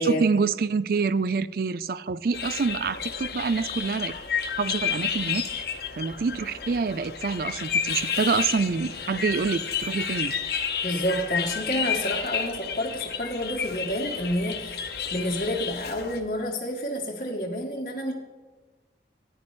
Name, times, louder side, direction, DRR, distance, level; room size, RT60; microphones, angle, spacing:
voice 1, 0.0-4.1 4.6-5.7 6.0-10.3, right 4 dB, 55° right, 17 dB, 0.4 m, -26 dB
sound 1, 2.3-16.2, left 7 dB, 60° left, 1.0 m, -31 dB
voice 2, 10.8-14.8 15.1-18.1, equal, 45° left, -3 dB, 1.2 m, -29 dB
13.5 x 9.9 x 3.2 m, 1.3 s
head